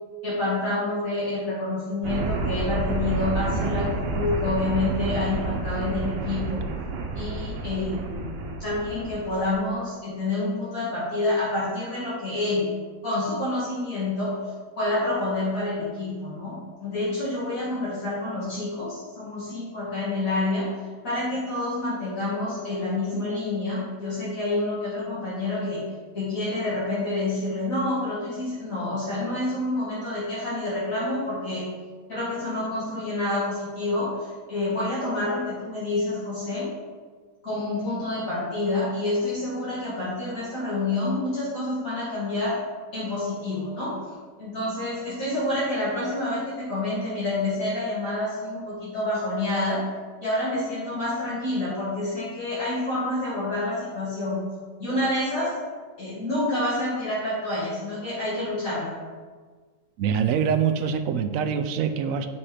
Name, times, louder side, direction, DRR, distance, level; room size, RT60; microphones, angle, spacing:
voice 1, 0.2-6.6 7.2-12.7 13.0-14.3 14.8-20.7 21.0-25.8 26.1-31.7 32.1-36.7 37.4-42.6 42.9-43.9 44.4-49.8 50.2-54.4 54.8-55.5 56.0-58.9, left 2 dB, 55° left, -10 dB, 2.3 m, -28 dB
sound 1, 2.0-9.5, right 3 dB, 85° right, 1.4 m, -29 dB
voice 2, 60.0-62.3, right 7 dB, 70° right, 8 dB, 0.8 m, -24 dB
7.1 x 4.3 x 4.9 m, 1.5 s
omnidirectional pair, 1.8 m